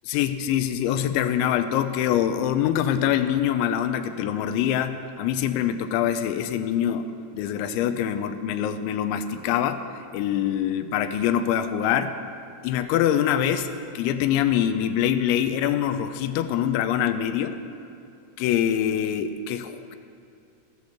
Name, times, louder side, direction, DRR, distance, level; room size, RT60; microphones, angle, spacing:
voice 1, 0.0-9.8 10.1-12.1 12.6-13.7 13.9-17.6 18.4-20.0, left 10 dB, 85° left, 9 dB, 2.9 m, -24 dB
13.0 x 7.9 x 7.1 m, 2.6 s
omnidirectional pair, 5.5 m